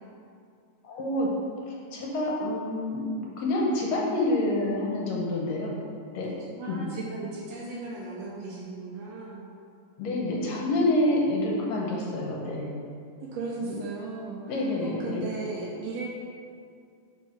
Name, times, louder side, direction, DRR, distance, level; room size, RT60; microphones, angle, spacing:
voice 1, 0.8-1.3 1.9-5.7 6.1-6.3 6.7-6.9 10.0-12.8 13.7-13.8 14.5-15.3, left 1 dB, 70° left, -3 dB, 1.7 m, -27 dB
voice 2, 6.5-9.5 13.2-16.1, right 3 dB, 90° right, -4 dB, 1.4 m, -36 dB
4.6 x 4.5 x 5.7 m, 2.3 s
omnidirectional pair, 3.7 m